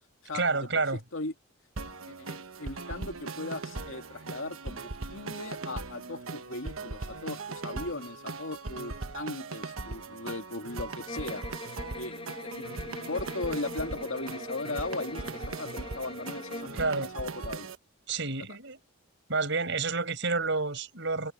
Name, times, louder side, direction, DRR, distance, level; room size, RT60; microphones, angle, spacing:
voice 1, 0.3-1.0 16.7-17.1 18.1-18.8 19.3-21.3, right 3 dB, 60° right, 7.5 m, -29 dB
voice 2, 0.9-1.3 2.1-12.7 13.1-17.7, left 2 dB, 65° left, 2.3 m, -38 dB
sound 1, 1.8-17.8, right 3 dB, 80° right, 1.2 m, -39 dB
sound 2, 11.1-16.8, left 2 dB, 25° left, 7.9 m, -42 dB
head